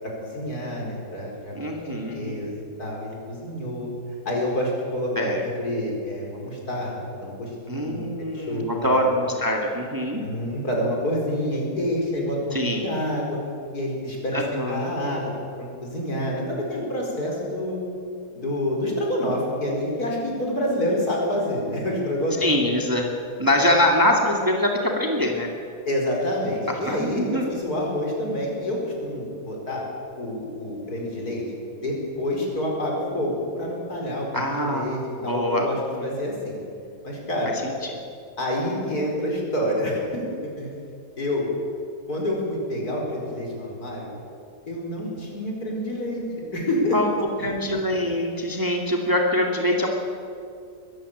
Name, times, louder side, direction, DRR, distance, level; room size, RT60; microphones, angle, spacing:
voice 1, 0.0-1.5 1.8-3.9 4.3-7.0 7.2-8.1 8.3-9.1 10.2-13.4 13.7-14.4 14.7-15.3 15.6-17.8 18.3-22.5 25.9-29.8 30.2-31.4 31.8-36.6 37.0-37.6 38.4-40.7 41.2-41.5 42.1-44.1 44.7-46.2 46.5-47.0 47.4-47.6, left 1 dB, 65° left, -1 dB, 5.3 m, -28 dB
voice 2, 1.6-2.4 5.2-5.4 7.7-10.2 12.5-12.9 14.3-14.9 22.4-23.1 23.4-25.5 26.9-27.5 34.3-36.1 45.0-45.2 46.9-49.9, left 1 dB, 10° right, 1 dB, 2.0 m, -24 dB
21.5 x 15.0 x 8.5 m, 2.5 s
omnidirectional pair, 1.7 m